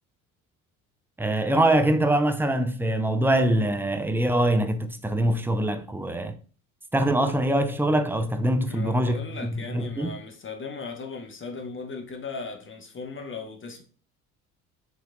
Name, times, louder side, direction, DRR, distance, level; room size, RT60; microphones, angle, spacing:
voice 1, 1.2-6.4 6.9-10.2, right 1 dB, 5° right, 0.5 m, -24 dB
voice 2, 8.7-13.8, left 4 dB, 30° left, 1.2 m, -37 dB
6.5 x 3.1 x 2.6 m
hypercardioid pair, 60°, 43 cm